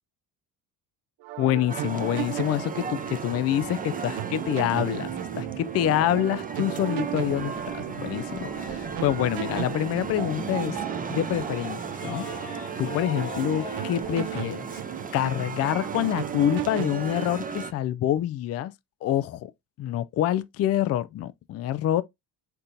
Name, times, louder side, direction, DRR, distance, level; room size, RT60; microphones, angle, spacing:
sound 1, 1.2-17.3, right 14 dB, 55° right, 0.6 m, -35 dB
voice 1, 1.4-5.1 5.4-7.6 8.0-10.8 11.1-12.3 12.8-14.6 15.1-18.7 19.0-19.5 19.8-22.0, left 12 dB, 35° left, 0.4 m, -26 dB
sound 2, 1.7-17.7, right 4 dB, 15° right, 0.7 m, -36 dB
sound 3, 7.0-14.5, left 6 dB, 65° left, 1.0 m, -45 dB
4.4 x 3.7 x 2.7 m
hypercardioid pair, 55°, 49 cm